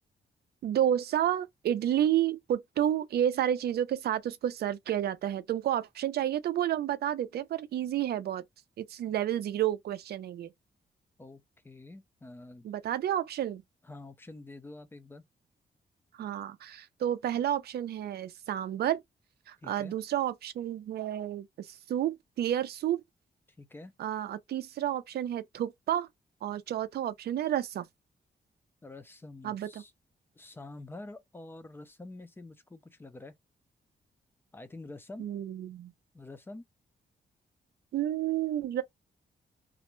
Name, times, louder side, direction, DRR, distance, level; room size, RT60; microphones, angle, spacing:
voice 1, 0.6-8.4 8.8-10.5 12.6-13.6 16.2-19.0 19.5-23.0 24.0-26.1 26.4-27.8 29.4-29.7 35.2-35.9 37.9-38.8, right 11 dB, 65° right, 0.4 m, -30 dB
voice 2, 11.2-12.7 13.8-15.2 19.6-19.9 23.6-23.9 28.8-29.9 30.4-33.3 34.5-35.3 36.1-36.6, left 2 dB, 15° left, 0.3 m, -47 dB
2.4 x 2.1 x 3.0 m
wide cardioid pair, 175°, 18 cm